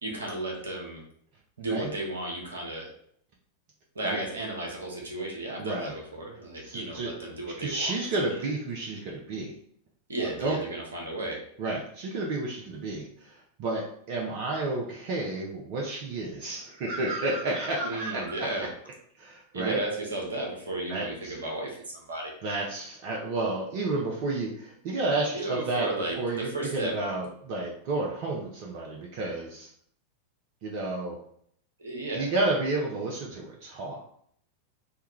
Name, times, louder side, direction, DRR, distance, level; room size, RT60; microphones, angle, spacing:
voice 1, 0.0-1.0 1.6-2.9 3.9-7.9 10.1-11.4 17.8-18.7 19.5-22.3 25.3-26.9 31.8-32.3, right 2 dB, 70° right, 0 dB, 0.8 m, -34 dB
voice 2, 5.6-5.9 6.6-7.1 7.6-9.6 10.2-10.6 11.6-18.3 19.2-19.8 20.9-21.4 22.4-25.9 26.2-29.7 30.6-31.2 32.1-34.0, right 2 dB, 45° right, -2 dB, 0.5 m, -31 dB
3.4 x 2.2 x 3.0 m, 0.66 s
figure-of-eight pair, 90°, 0 cm